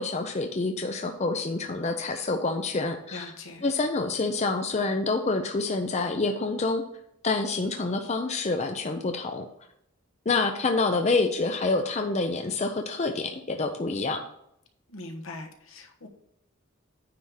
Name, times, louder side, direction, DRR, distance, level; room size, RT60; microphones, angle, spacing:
voice 1, 0.0-3.3 3.6-6.8 7.2-9.5 10.3-14.2, left 3 dB, 30° left, 5 dB, 0.5 m, -27 dB
voice 2, 3.1-3.6 14.9-16.1, left 2 dB, 75° left, 4 dB, 1.2 m, -41 dB
9.4 x 3.6 x 6.3 m, 0.76 s
head